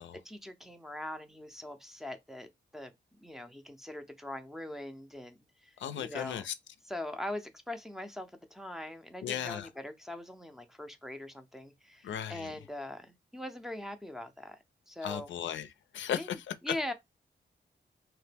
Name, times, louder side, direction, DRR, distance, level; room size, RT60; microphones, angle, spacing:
voice 1, 0.1-2.5 2.7-2.9 3.2-6.4 6.9-14.6 14.9-15.3 16.1-16.3 16.6-16.9, left 1 dB, ahead, 0.5 m, -41 dB
voice 2, 5.8-6.5 9.2-9.7 12.0-12.6 15.0-16.7, left 10 dB, 85° left, 0.4 m, -36 dB
2.9 x 2.1 x 3.3 m
cardioid pair, 90°, 19 cm